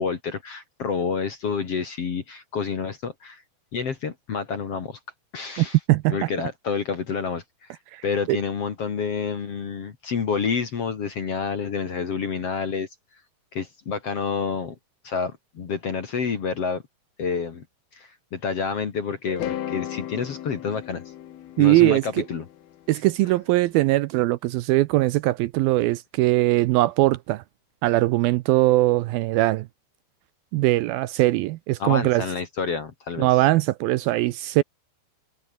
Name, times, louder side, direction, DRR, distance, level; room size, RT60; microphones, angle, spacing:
voice 1, 0.0-3.4 3.7-5.0 5.3-5.8 6.1-7.4 7.7-7.8 8.0-12.9 13.5-14.7 15.0-16.8 17.2-17.6 17.9-21.0 21.6-22.5 31.8-33.3, left 5 dB, 45° left, 2.4 m, -28 dB
voice 2, 5.6-6.2 7.9-8.0 8.3-8.4 21.6-22.2 22.9-27.4 27.8-29.7 30.5-32.3 33.2-34.6, right 17 dB, 85° right, 2.2 m, -21 dB
sound 1, 19.3-23.4, left 12 dB, 65° left, 3.4 m, -36 dB
omnidirectional pair, 4.9 m